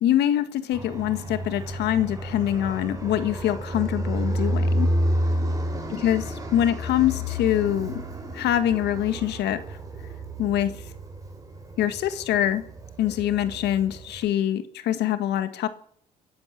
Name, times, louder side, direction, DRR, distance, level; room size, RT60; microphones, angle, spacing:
voice 1, 0.0-4.9 5.9-6.2 6.5-7.9 8.3-9.6 10.4-10.7 11.8-12.6 13.0-15.7, left 11 dB, 80° left, 11 dB, 1.8 m, -24 dB
Fixed-wing aircraft airplane, 0.7-14.2, equal, 20° right, 4.9 m, -30 dB
30.0 x 11.5 x 7.6 m, 0.64 s
cardioid pair, 85°, 17 cm